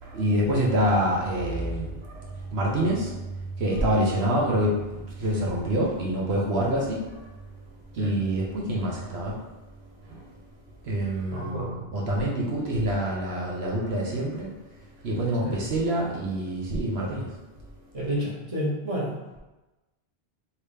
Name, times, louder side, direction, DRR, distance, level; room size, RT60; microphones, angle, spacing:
voice 1, 0.0-7.3 7.9-9.4 10.1-10.3 10.8-14.5 15.0-17.3, right 1 dB, 85° right, -3 dB, 1.1 m, -26 dB
voice 2, 11.3-11.8 15.4-15.6 17.9-19.2, right 1 dB, 35° right, -6 dB, 1.4 m, -30 dB
4.7 x 3.0 x 3.3 m, 1.1 s
omnidirectional pair, 1.1 m